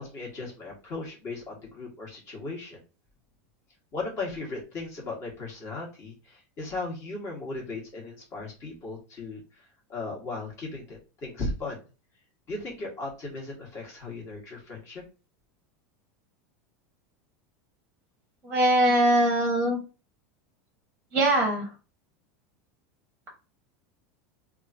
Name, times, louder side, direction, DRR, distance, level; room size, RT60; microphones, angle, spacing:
voice 1, 0.0-2.8 3.9-9.6 9.9-11.8 12.5-15.0, left 3 dB, 35° left, -1 dB, 1.4 m, -37 dB
voice 2, 18.4-19.8 21.1-21.7, right 1 dB, 10° right, -1 dB, 0.9 m, -22 dB
2.9 x 2.4 x 2.6 m, 0.32 s
supercardioid pair, 155°, 9 cm